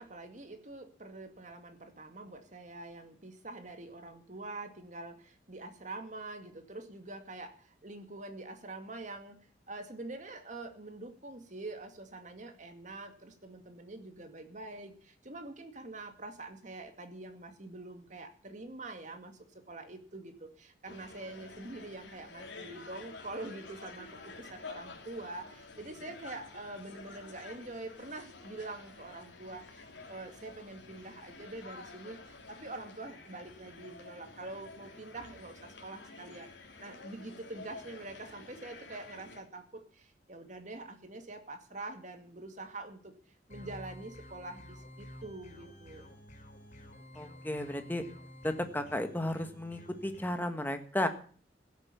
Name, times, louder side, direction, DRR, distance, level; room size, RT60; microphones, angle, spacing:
voice 1, 0.0-43.1 43.5-46.1, right 2 dB, 45° right, 6 dB, 2.3 m, -45 dB
sound 1, 20.8-39.4, left 3 dB, 85° left, 3.2 m, -50 dB
sound 2, 43.5-50.3, equal, 40° left, 4.2 m, -51 dB
voice 2, 47.1-48.0 48.4-51.1, left 1 dB, 10° left, 7 dB, 1.6 m, -34 dB
16.5 x 8.4 x 7.0 m, 0.43 s
head